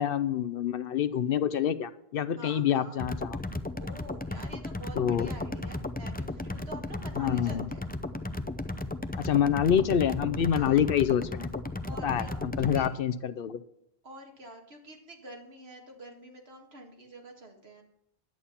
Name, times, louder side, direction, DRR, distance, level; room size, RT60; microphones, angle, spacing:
voice 1, 0.0-3.4 5.0-5.3 7.2-7.7 9.2-11.5 12.0-13.6, left 9 dB, 65° left, 13 dB, 0.7 m, -27 dB
voice 2, 2.4-3.0 3.8-7.9 10.5-10.8 11.9-12.8 14.0-17.8, right 1 dB, 70° right, 2 dB, 2.2 m, -47 dB
sound 1, 3.0-12.9, left 2 dB, 15° left, 0.4 m, -35 dB
11.0 x 8.7 x 5.7 m, 0.79 s
omnidirectional pair, 1.1 m